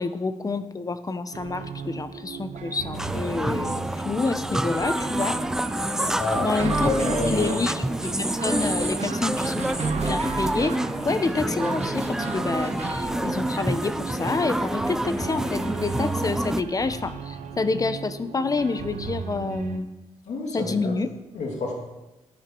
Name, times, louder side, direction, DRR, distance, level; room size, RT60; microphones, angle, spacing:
voice 1, 0.0-3.7 4.0-5.4 6.4-6.9 7.2-7.8 8.2-9.7 9.9-10.8 11.0-19.9 20.5-21.1, left 3 dB, 30° left, 12 dB, 0.7 m, -28 dB
sound 1, 1.3-19.8, right 6 dB, 80° right, 1.1 m, -37 dB
sound 2, 2.9-16.6, right 1 dB, 5° right, 0.4 m, -28 dB
voice 2, 6.1-7.6 20.3-21.0 21.3-21.8, left 3 dB, 70° left, 0 dB, 2.5 m, -29 dB
sound 3, 6.6-13.0, right 4 dB, 65° right, 1.3 m, -33 dB
12.0 x 9.2 x 4.5 m, 1.0 s
cardioid pair, 90°, 12 cm